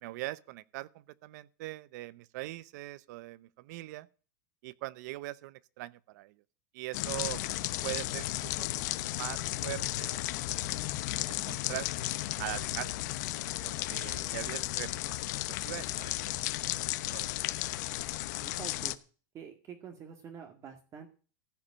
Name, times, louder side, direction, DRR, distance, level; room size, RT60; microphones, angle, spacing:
voice 1, 0.0-4.1 4.6-6.3 6.7-7.4 7.8-8.7 9.0-10.9 11.1-12.1 12.4-12.9 13.6-15.2 15.6-16.3 17.0-17.3, right 18 dB, 65° right, 0.8 m, -42 dB
sound 1, 6.9-19.0, left 17 dB, 65° left, 0.9 m, -34 dB
voice 2, 18.4-19.0 19.3-21.1, right 7 dB, 30° right, 2.0 m, -47 dB
15.5 x 5.3 x 8.7 m
supercardioid pair, 145°, 10 cm